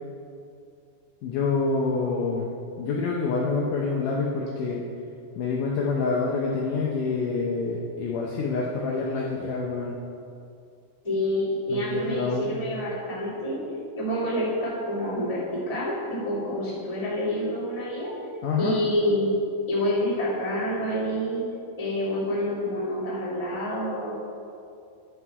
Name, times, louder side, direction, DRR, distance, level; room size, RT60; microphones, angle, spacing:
voice 1, 1.2-2.5 2.8-4.8 5.4-9.9 11.7-12.5 18.4-18.8, left 4 dB, 75° left, -3 dB, 2.0 m, -27 dB
voice 2, 11.0-13.6 13.9-18.1 18.6-19.3 19.6-21.4 21.8-24.1, equal, 10° left, -8 dB, 1.8 m, -27 dB
11.0 x 6.5 x 4.7 m, 2.5 s
omnidirectional pair, 4.4 m